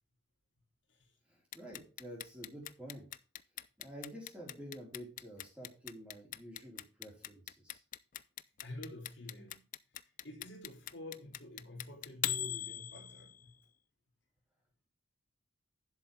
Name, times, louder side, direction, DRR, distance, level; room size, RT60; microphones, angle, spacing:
voice 1, 1.3-3.0 3.8-7.8, equal, 5° right, 4.3 m, -49 dB
Clock, 1.5-13.5, left 12 dB, 40° left, 0.5 m, -40 dB
voice 2, 8.6-9.6 10.0-13.5, left 1 dB, 60° left, 3.0 m, -48 dB
11.0 x 7.8 x 3.7 m
head